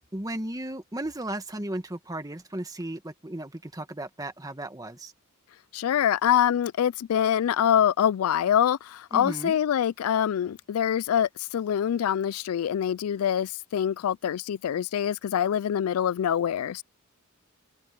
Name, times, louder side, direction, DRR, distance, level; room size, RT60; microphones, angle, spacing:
voice 1, 0.1-5.1 9.1-9.6, right 1 dB, 15° right, 1.7 m, -35 dB
voice 2, 5.7-16.8, left 9 dB, 80° left, 0.3 m, -25 dB
head